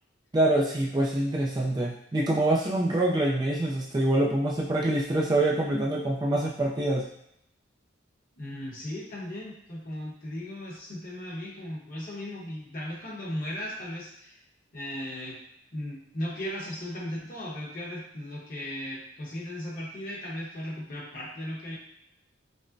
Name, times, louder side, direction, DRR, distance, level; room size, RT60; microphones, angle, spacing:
voice 1, 0.3-7.1, right 1 dB, 20° right, -3 dB, 0.3 m, -25 dB
voice 2, 8.4-14.4 14.7-15.4 15.7-21.8, left 1 dB, 45° left, -5 dB, 1.0 m, -37 dB
5.1 x 2.1 x 2.5 m, 0.76 s
head